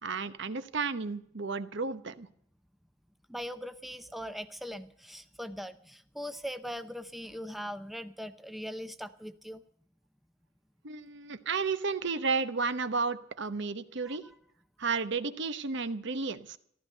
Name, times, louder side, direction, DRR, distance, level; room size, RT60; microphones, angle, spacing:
voice 1, 0.0-2.3 10.8-14.3 14.8-16.6, right 4 dB, 65° right, 12 dB, 1.0 m, -32 dB
voice 2, 3.3-9.6 14.1-14.2, equal, ahead, 10 dB, 0.6 m, -40 dB
14.5 x 13.0 x 6.5 m, 0.65 s
head